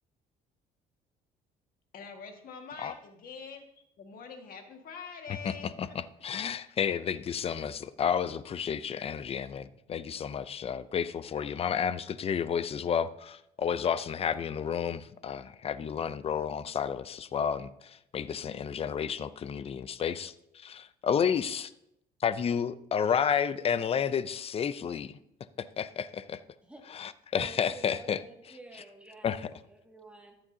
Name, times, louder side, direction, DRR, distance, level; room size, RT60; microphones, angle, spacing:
voice 1, 1.9-6.0, left 5 dB, 60° left, 4 dB, 1.8 m, -45 dB
voice 2, 5.4-21.7 22.2-25.2 25.6-26.4 26.9-28.2 29.2-29.5, left 7 dB, 35° left, 15 dB, 0.5 m, -31 dB
voice 3, 27.3-29.3 29.7-30.3, right 2 dB, 5° right, 0 dB, 2.1 m, -49 dB
13.5 x 8.8 x 2.8 m, 0.78 s
cardioid pair, 110°, 17 cm